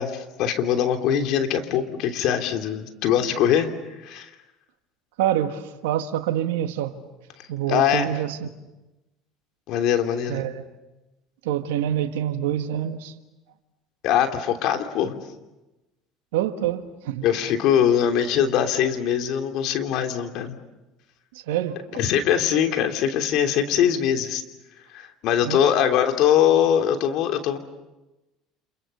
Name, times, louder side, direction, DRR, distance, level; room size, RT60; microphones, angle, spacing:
voice 1, 0.0-3.7 4.0-4.3 7.7-8.2 9.7-10.4 14.0-15.2 17.2-20.5 21.9-24.4 24.9-27.6, left 9 dB, 65° left, 3.1 m, -22 dB
voice 2, 5.2-7.0 7.5-8.5 10.3-10.7 11.4-13.1 16.3-17.2 21.3-22.0 25.5-25.6, right 11 dB, 85° right, 1.6 m, -26 dB
30.0 x 27.5 x 6.9 m
hypercardioid pair, 85°, 0 cm